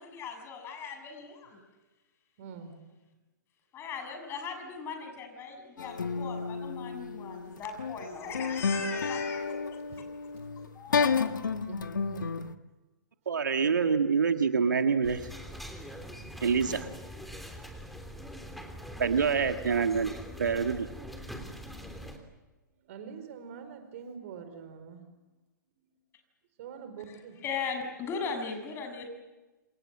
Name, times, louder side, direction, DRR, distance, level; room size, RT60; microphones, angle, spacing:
voice 1, 0.0-1.6 3.7-9.8 10.7-11.3 27.1-27.2 27.4-29.1, left 5 dB, 25° left, 6 dB, 6.7 m, -38 dB
voice 2, 2.4-2.7 9.9-10.0 11.7-12.5 22.7-25.1 25.8-25.9 26.6-27.4, right 6 dB, 45° right, 9 dB, 4.9 m, -45 dB
sound 1, 5.8-12.5, left 5 dB, 70° left, 1.4 m, -31 dB
voice 3, 13.2-15.3 16.4-16.9 19.0-20.9, right 6 dB, 70° right, 8 dB, 1.7 m, -26 dB
sound 2, 15.0-22.2, equal, ahead, 3.3 m, -43 dB
28.0 x 27.0 x 7.5 m, 1.1 s
figure-of-eight pair, 115°, 10 cm